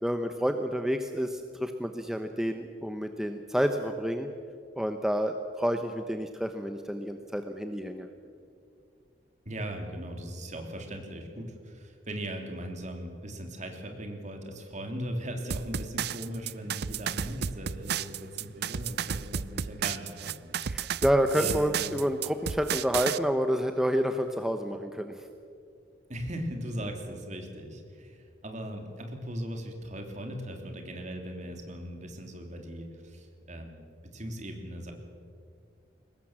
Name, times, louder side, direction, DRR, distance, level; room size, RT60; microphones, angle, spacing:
voice 1, 0.0-4.3 4.8-8.1 20.7-25.1, equal, 5° right, 6 dB, 0.8 m, -29 dB
voice 2, 9.4-20.6 21.3-22.0 26.1-34.9, equal, 40° right, 3 dB, 3.1 m, -39 dB
sound 1, 15.5-23.2, right 8 dB, 60° right, 0.5 m, -32 dB
23.0 x 19.5 x 7.4 m, 2.3 s
head